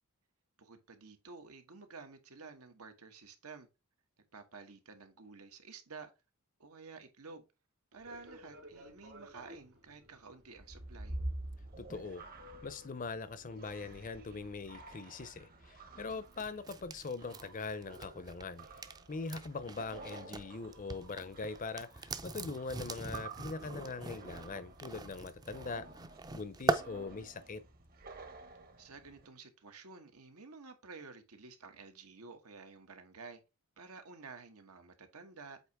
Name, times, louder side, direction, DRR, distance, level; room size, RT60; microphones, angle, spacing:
voice 1, 0.6-3.7 4.3-6.1 6.6-7.4 7.9-11.2 28.8-33.4 33.8-35.6, right 4 dB, 85° right, 1.3 m, -52 dB
Fixed-wing aircraft airplane, 8.0-14.4, equal, 65° right, 3.2 m, -57 dB
sound 1, 10.5-29.3, right 2 dB, 40° right, 1.0 m, -49 dB
voice 2, 11.8-12.2 12.6-18.7 19.1-25.9 26.3-27.6, left 4 dB, 35° left, 0.6 m, -42 dB
sound 2, 16.1-20.5 20.7-26.8, right 3 dB, 20° right, 0.5 m, -41 dB
8.1 x 2.9 x 4.6 m
head